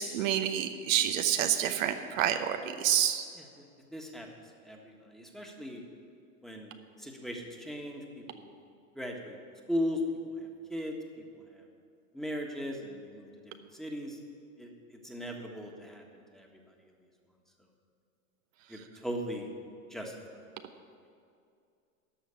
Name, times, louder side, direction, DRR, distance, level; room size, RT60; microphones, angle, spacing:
voice 1, 0.0-3.2, right 10 dB, 70° right, 7 dB, 0.9 m, -28 dB
voice 2, 3.9-4.3 4.6-5.8 6.4-6.7 7.0-8.5 8.9-9.4 9.7-10.0 10.4-10.9 11.3-11.7 12.1-13.3 13.7-14.2 14.6-16.8 18.7-19.5 19.9-20.4, equal, ahead, 0 dB, 1.6 m, -38 dB
13.5 x 5.6 x 9.5 m, 2.4 s
hypercardioid pair, 95°, 42 cm